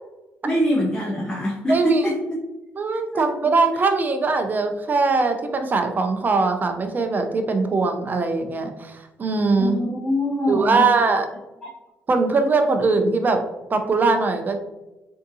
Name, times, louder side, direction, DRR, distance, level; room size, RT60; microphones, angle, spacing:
voice 1, 0.4-2.2 3.1-3.3 9.6-10.9, equal, 15° left, -4 dB, 0.8 m, -23 dB
voice 2, 1.7-2.0 2.8-9.8 10.5-11.3 12.1-13.4 13.7-14.6, right 3 dB, 35° right, 6 dB, 0.5 m, -21 dB
3.4 x 2.7 x 2.7 m, 1.0 s
supercardioid pair, 75°, 5 cm